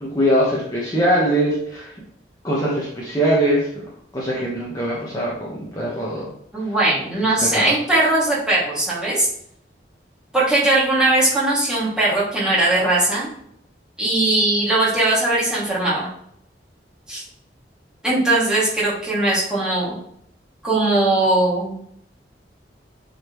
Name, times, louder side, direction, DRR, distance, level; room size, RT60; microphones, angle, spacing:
voice 1, 0.0-2.0 2.4-3.8 4.1-6.3 7.4-7.7, right 1 dB, 20° left, -6 dB, 1.3 m, -22 dB
voice 2, 6.5-9.3 10.3-13.3 14.0-16.1 17.1-17.2 18.0-19.9 20.6-21.8, right 2 dB, 5° right, -8 dB, 2.4 m, -19 dB
8.4 x 4.2 x 3.1 m, 0.70 s
head